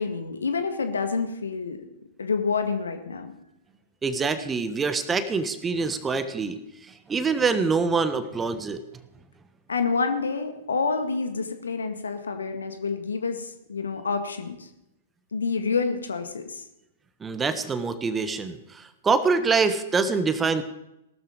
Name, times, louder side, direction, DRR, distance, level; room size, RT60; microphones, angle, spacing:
voice 1, 0.0-1.9 2.2-3.3 9.7-14.7 15.3-16.6, left 4 dB, 70° left, 8 dB, 1.8 m, -28 dB
voice 2, 4.0-6.6 7.1-8.8 17.2-20.6, right 4 dB, 15° right, 11 dB, 1.3 m, -25 dB
18.0 x 13.0 x 5.1 m, 0.87 s
figure-of-eight pair, 100°, 0 cm